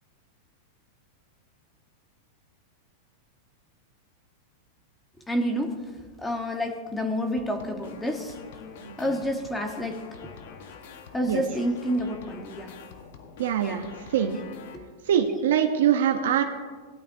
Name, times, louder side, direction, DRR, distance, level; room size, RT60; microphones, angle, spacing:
voice 1, 5.3-5.8 6.2-8.4 9.0-10.0 11.1-12.7 13.6-13.8 14.7-14.8, equal, 10° left, 4 dB, 1.1 m, -29 dB
sound 1, 7.4-14.8, left 5 dB, 70° left, 1.2 m, -45 dB
voice 2, 13.4-14.4 15.0-16.4, right 9 dB, 80° right, 5 dB, 0.8 m, -23 dB
17.5 x 11.5 x 2.7 m, 1.5 s
supercardioid pair, 130°, 0 cm